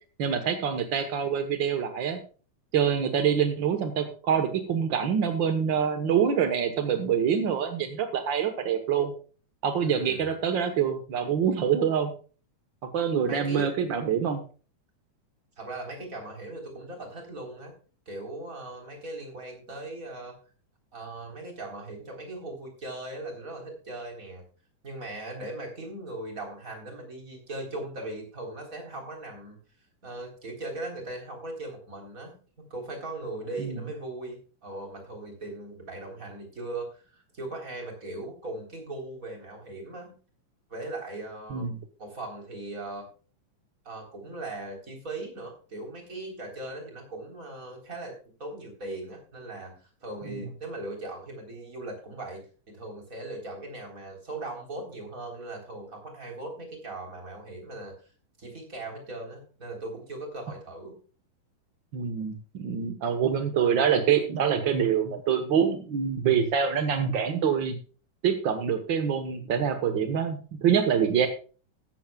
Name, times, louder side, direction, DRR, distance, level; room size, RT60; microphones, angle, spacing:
voice 1, 0.2-2.2 2.7-9.1 9.6-12.1 12.9-14.4 41.5-41.8 50.3-50.5 61.9-67.8 68.2-71.3, right 7 dB, 60° right, 7 dB, 1.2 m, -25 dB
voice 2, 9.8-10.3 13.3-13.7 15.6-17.7 18.1-20.4 20.9-24.4 24.8-29.6 30.0-40.1 40.7-41.7 42.0-43.1 43.8-48.1 48.4-57.9 58.4-61.0, right 2 dB, 25° right, 2 dB, 4.0 m, -39 dB
15.0 x 13.0 x 2.3 m, 0.38 s
omnidirectional pair, 3.8 m